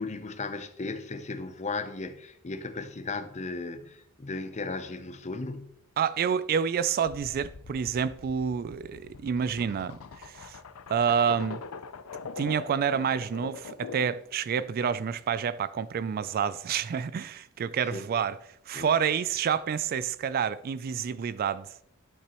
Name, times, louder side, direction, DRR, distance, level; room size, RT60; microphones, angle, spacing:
voice 1, 0.0-5.7 17.9-18.1 18.7-18.9, left 3 dB, 35° left, 0.7 m, -36 dB
voice 2, 6.0-10.6 10.9-11.6 12.4-18.4 18.7-21.8, right 7 dB, 45° right, 0.3 m, -28 dB
sound 1, 7.0-14.2, left 5 dB, 90° left, 0.6 m, -43 dB
11.5 x 6.7 x 3.0 m
head